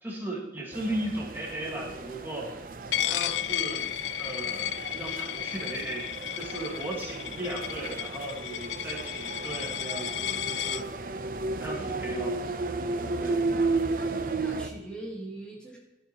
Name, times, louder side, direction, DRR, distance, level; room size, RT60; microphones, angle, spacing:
voice 1, 0.0-2.6 3.0-3.8 4.2-11.3 11.6-12.4 12.9-13.4, right 1 dB, 15° right, -3 dB, 1.7 m, -36 dB
sound 1, 0.7-14.7, right 3 dB, 50° right, 0.6 m, -34 dB
Coin (dropping), 2.9-10.8, left 12 dB, 85° left, 0.3 m, -33 dB
voice 2, 14.0-15.8, right 2 dB, 5° left, -3 dB, 1.6 m, -43 dB
14.0 x 5.6 x 3.0 m, 1.0 s
head